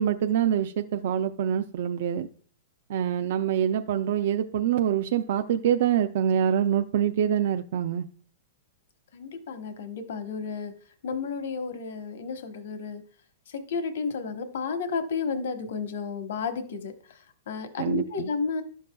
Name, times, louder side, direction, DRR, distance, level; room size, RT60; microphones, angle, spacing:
voice 1, 0.0-2.3 2.9-8.1 17.8-18.3, right 9 dB, 60° right, 7 dB, 0.4 m, -25 dB
voice 2, 9.1-10.7 11.0-13.0 13.5-18.6, left 5 dB, 75° left, 7 dB, 1.0 m, -32 dB
11.5 x 6.4 x 2.2 m, 0.44 s
hypercardioid pair, 155°, 0 cm